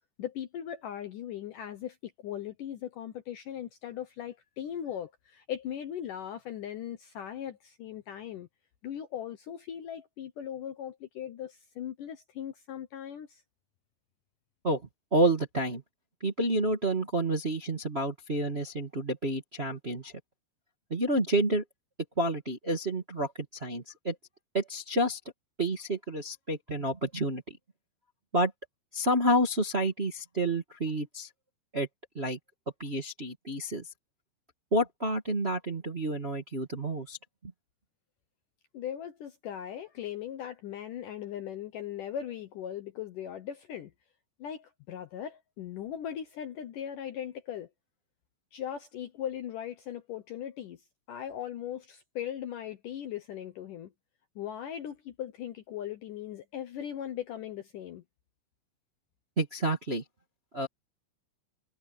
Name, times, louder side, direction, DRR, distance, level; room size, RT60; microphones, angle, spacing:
voice 1, 0.2-8.5 8.8-13.4 38.7-43.9 44.4-47.7 48.5-50.8 51.1-53.9 54.4-58.0, left 10 dB, 75° left, 1.9 m, -39 dB
voice 2, 15.1-15.8 16.2-20.1 20.9-21.6 22.2-23.3 23.6-24.1 24.5-25.2 25.6-27.4 28.3-28.5 28.9-31.3 31.7-31.9 32.1-32.4 32.8-33.8 34.7-37.2 59.4-60.0 60.5-60.7, right 1 dB, 80° right, 0.5 m, -29 dB
omnidirectional pair, 5.2 m